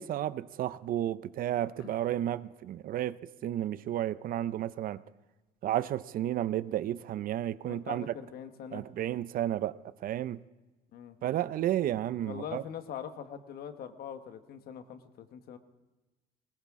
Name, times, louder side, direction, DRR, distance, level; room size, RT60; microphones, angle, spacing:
voice 1, 0.0-5.0 5.6-8.0 8.7-10.4 11.2-12.6, right 12 dB, 60° right, 17 dB, 0.5 m, -32 dB
voice 2, 7.6-8.8 10.9-11.1 12.2-15.6, left 8 dB, 65° left, 9 dB, 1.2 m, -42 dB
20.0 x 19.0 x 3.6 m, 1.1 s
cardioid pair, 110°, 17 cm